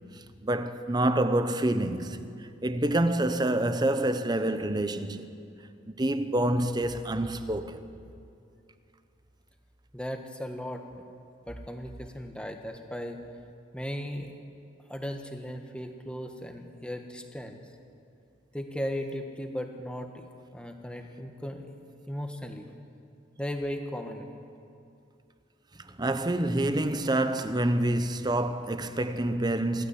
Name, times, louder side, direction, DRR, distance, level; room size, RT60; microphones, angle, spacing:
voice 1, 0.4-2.2 2.6-5.3 5.9-7.8 26.0-29.9, right 1 dB, 20° right, 0.9 m, -27 dB
voice 2, 9.9-10.8 11.5-13.2 13.7-14.3 14.9-17.6 18.5-21.7 22.1-22.7 23.4-24.3, equal, 5° left, 1.5 m, -36 dB
27.5 x 13.0 x 8.5 m
head